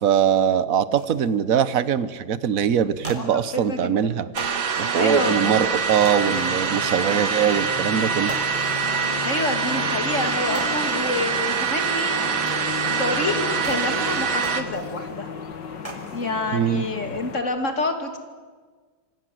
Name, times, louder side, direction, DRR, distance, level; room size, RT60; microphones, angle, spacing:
voice 1, 0.0-4.3 4.8-8.3 16.5-16.8, right 8 dB, 50° right, 15 dB, 1.3 m, -22 dB
sound 1, 1.0-1.3 2.0-2.1 2.4-2.5 2.8-3.8 4.3-5.2 6.0-6.8 7.2-7.4 7.7-7.8 8.2-9.2 9.9-10.0 10.3-11.4 11.7-11.8 12.4-13.2 13.6-15.2 15.5-16.4 16.7-17.3, right 1 dB, 15° right, 3.7 m, -40 dB
voice 2, 2.8-4.1 5.0-5.3 9.2-12.3 13.0-15.3 16.1-18.2, left 2 dB, 35° left, 6 dB, 3.0 m, -28 dB
sound 2, 4.3-14.6, right 6 dB, 75° right, 2.5 m, -25 dB
sound 3, 5.1-17.4, left 6 dB, 60° left, 2.3 m, -36 dB
26.5 x 25.0 x 7.9 m, 1.5 s
omnidirectional pair, 2.2 m